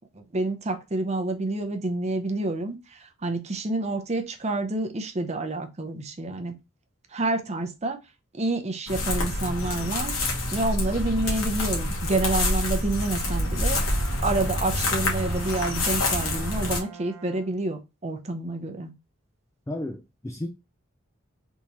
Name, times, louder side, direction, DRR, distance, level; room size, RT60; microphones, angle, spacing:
voice 1, 0.1-6.6 7.1-8.0 8.3-10.1 10.5-13.8 14.2-18.9, right 2 dB, 30° right, 0.6 m, -28 dB
sound 1, 8.9-16.8, left 1 dB, 70° left, 1.2 m, -27 dB
Brass instrument, 13.2-17.6, right 6 dB, 85° right, 0.7 m, -45 dB
voice 2, 19.7-20.5, left 1 dB, 15° left, 0.3 m, -33 dB
3.6 x 3.0 x 2.6 m
head